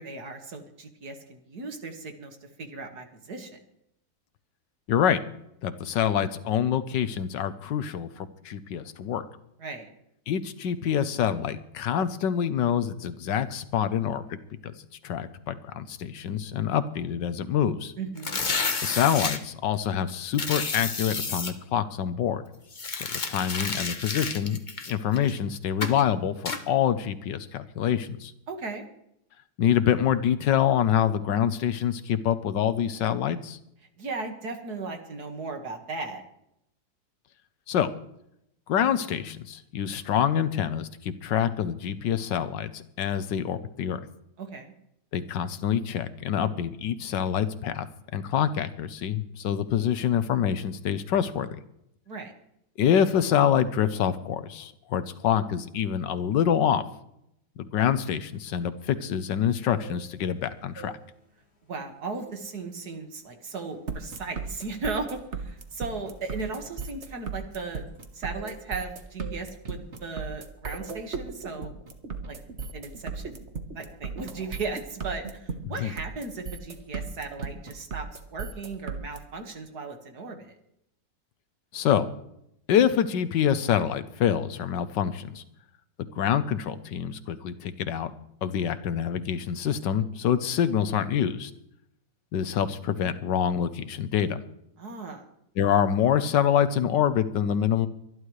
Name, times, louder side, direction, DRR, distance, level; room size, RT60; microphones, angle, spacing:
voice 1, 0.0-3.6 9.6-9.9 18.0-18.4 28.5-28.9 34.0-36.2 44.4-44.7 52.1-52.3 61.7-67.8 68.1-71.7 72.3-72.4 72.7-73.4 73.7-80.6 94.8-95.2, right 4 dB, 60° right, 5 dB, 2.3 m, -36 dB
voice 2, 4.9-5.2 5.6-9.2 10.3-14.4 15.0-17.9 18.8-22.4 22.9-24.6 24.9-28.3 29.6-33.6 37.7-37.9 38.7-44.0 45.1-47.9 48.1-51.5 52.8-56.8 57.6-60.9 75.8-75.9 81.7-82.1 82.7-85.4 86.1-88.1 88.4-91.5 92.3-94.4 95.6-97.9, left 9 dB, 85° left, 12 dB, 1.5 m, -26 dB
sound 1, 18.2-19.4 20.3-21.5 22.7-25.4 25.8-26.0 26.5-26.6, left 4 dB, 30° left, 1.0 m, -30 dB
sound 2, 59.6-60.3 60.7-61.8 62.1-62.5 62.9-63.1 63.7-63.9 64.2-68.0 68.3-68.9 69.2-69.5 69.8-70.0, right 6 dB, 60° left, 2.8 m, -48 dB
sound 3, 63.9-79.2, right 5 dB, 40° right, 1.5 m, -36 dB
24.5 x 11.0 x 3.2 m, 0.77 s
omnidirectional pair, 1.9 m